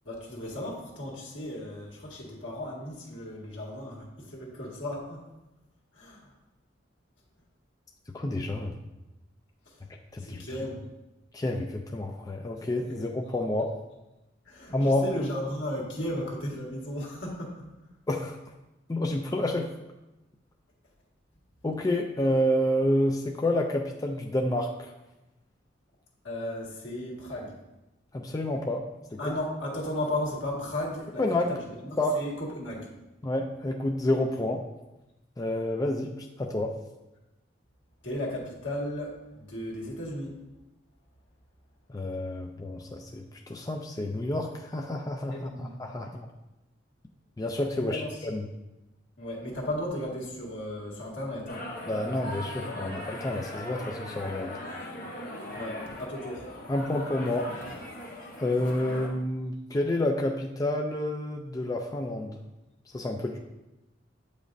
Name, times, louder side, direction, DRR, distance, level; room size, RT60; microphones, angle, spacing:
voice 1, 0.1-5.2 5.9-6.3 9.7-9.8 10.2-10.8 12.9-13.0 14.5-17.7 26.2-27.5 29.2-32.9 38.0-40.3 45.3-45.7 47.8-48.2 49.2-51.6 55.5-56.5, left 1 dB, 80° left, -3 dB, 1.8 m, -35 dB
voice 2, 8.1-8.7 10.1-10.4 11.3-13.7 14.7-15.0 18.1-18.4 18.9-19.7 21.6-24.9 28.1-28.8 29.1-29.2 31.2-31.5 32.0-32.2 33.2-34.6 35.4-36.7 41.9-46.3 47.4-48.5 51.9-54.5 56.7-57.5 58.4-62.4 62.9-63.4, left 1 dB, 20° left, 2 dB, 0.4 m, -29 dB
sound 1, 51.5-59.1, left 1 dB, 45° left, 1.1 m, -39 dB
8.4 x 5.0 x 2.6 m, 0.98 s
head